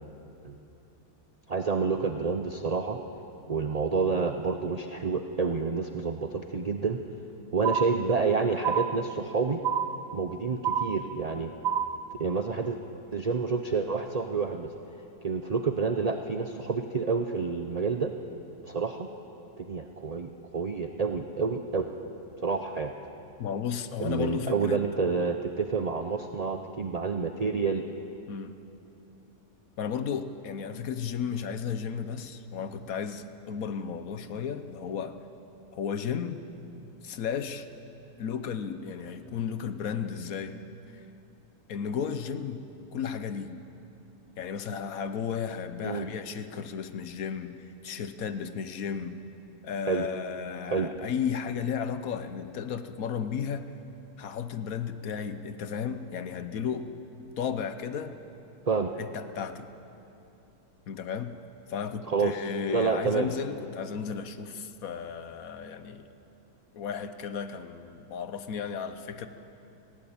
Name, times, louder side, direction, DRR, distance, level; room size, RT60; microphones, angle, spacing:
voice 1, 1.5-3.0 3.5-7.0 7.5-9.6 10.1-11.5 12.1-12.8 13.1-14.7 15.2-18.1 18.6-19.1 19.6-21.9 22.4-22.9 24.0-27.8 45.8-46.1 49.9-50.1 50.6-50.9 58.7-58.9 62.1-62.3 62.7-63.3, right 5 dB, 50° right, 5 dB, 0.4 m, -28 dB
sound 1, 7.6-8.3 8.6-9.3 9.6-10.3 10.6-11.3 11.6-12.3, right 8 dB, 70° right, 1.0 m, -29 dB
voice 2, 23.4-24.8 28.3-28.6 29.8-35.2 35.7-36.4 37.0-37.7 38.2-40.6 40.9-41.0 41.7-42.6 42.9-43.6 44.4-49.2 49.6-53.7 54.2-56.9 57.4-58.1 59.0-59.7 60.9-61.3 61.7-66.1 66.7-69.3, left 7 dB, 65° left, 10 dB, 1.2 m, -34 dB
18.5 x 16.5 x 8.8 m, 2.9 s
omnidirectional pair, 1.7 m